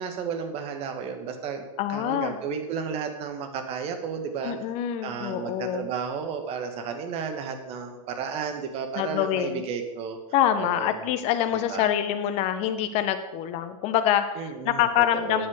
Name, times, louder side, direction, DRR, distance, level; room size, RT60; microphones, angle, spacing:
voice 1, 0.0-4.5 5.0-10.2 10.6-11.1 11.7-11.9 14.4-14.9 15.1-15.4, right 6 dB, 35° right, 6 dB, 1.7 m, -33 dB
voice 2, 1.8-2.4 4.4-5.9 8.9-9.6 10.3-15.5, left 10 dB, 40° left, 9 dB, 1.2 m, -25 dB
9.6 x 7.7 x 6.6 m, 1.1 s
hypercardioid pair, 125°, 18 cm